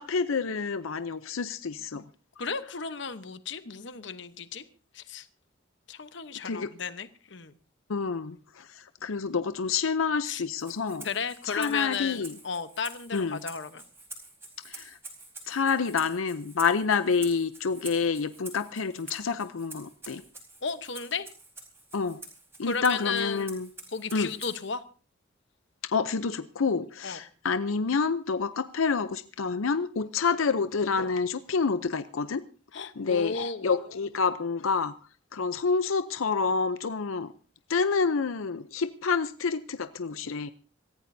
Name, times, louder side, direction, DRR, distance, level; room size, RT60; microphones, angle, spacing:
voice 1, 0.0-2.0 6.4-6.7 7.9-11.1 11.4-12.4 13.1-13.4 14.6-15.0 15.5-20.2 21.9-22.2 22.6-23.7 24.1-24.3 25.9-32.4 33.0-34.9 35.3-37.3 37.7-40.5, left 5 dB, 90° left, 11 dB, 0.6 m, -28 dB
voice 2, 2.4-4.6 4.9-5.3 5.9-7.5 10.2-10.4 11.0-13.8 20.6-21.3 22.6-23.5 23.9-24.8 27.0-27.2 32.7-33.7, left 5 dB, 65° left, 11 dB, 1.0 m, -34 dB
Rattle (instrument), 10.6-24.8, right 2 dB, 10° right, 4.1 m, -47 dB
26.5 x 14.5 x 2.7 m, 0.36 s
head